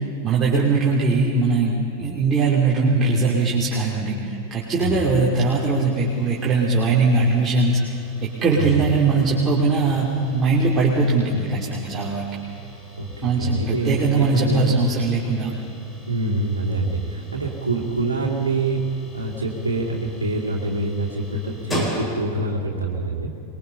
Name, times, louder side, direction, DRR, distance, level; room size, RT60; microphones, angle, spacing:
voice 1, 0.2-7.8 8.2-12.3 13.2-15.5, right 3 dB, 20° right, -4 dB, 3.0 m, -20 dB
sound 1, 5.7-22.6, right 1 dB, 15° left, 4.0 m, -39 dB
voice 2, 13.0-14.8 16.1-23.3, right 2 dB, 80° right, -1 dB, 2.5 m, -25 dB
24.0 x 22.0 x 5.6 m, 2.9 s
figure-of-eight pair, 90°, 0 cm